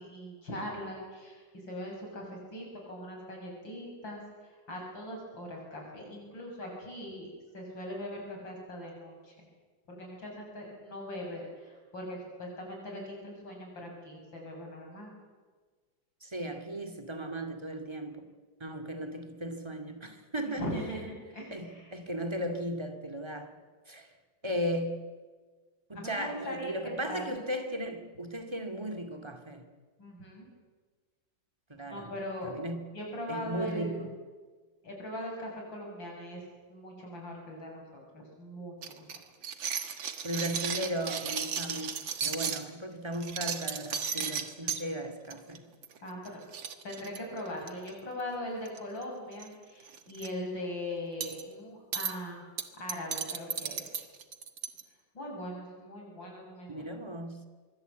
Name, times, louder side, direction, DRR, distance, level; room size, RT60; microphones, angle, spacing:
voice 1, 0.0-4.2 4.7-9.3 9.9-15.1 20.4-21.9 25.9-27.2 30.0-30.5 31.8-32.6 32.9-34.1 34.8-36.4 36.7-39.0 46.0-46.4 46.8-52.4 52.8-53.8 55.1-56.9, left 1 dB, 80° left, 7.9 m, -40 dB
voice 2, 16.2-18.3 18.6-20.7 21.5-23.6 23.9-24.1 24.4-25.0 25.9-29.7 31.7-32.1 32.4-32.8 33.3-34.1 40.0-45.7 56.7-57.5, equal, 15° right, 2.2 m, -36 dB
sound 1, 38.8-42.6 43.1-44.8 45.3-45.6 45.8-46.0 46.2-46.3 46.5-47.9 48.7-49.0 49.3-49.5 49.9-50.3 51.2-51.4 51.9-52.1 52.6-54.8, right 7 dB, 85° right, 2.3 m, -35 dB
25.5 x 23.5 x 8.3 m
omnidirectional pair, 2.0 m